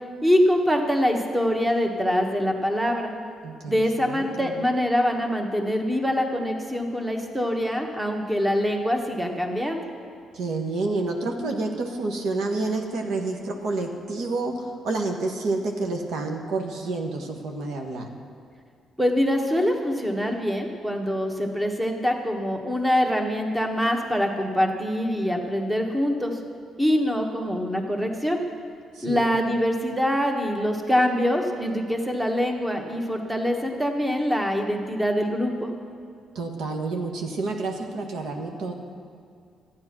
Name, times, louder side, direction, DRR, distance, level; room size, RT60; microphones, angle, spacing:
voice 1, 0.2-3.1 3.6-9.8 19.0-26.4 26.8-28.4 29.0-35.7, equal, 10° right, 3 dB, 1.4 m, -24 dB
voice 2, 4.0-4.6 10.3-18.1 28.9-29.3 36.3-38.7, right 3 dB, 80° right, 3 dB, 1.3 m, -29 dB
12.5 x 9.6 x 6.0 m, 2.4 s
cardioid pair, 90°, 0 cm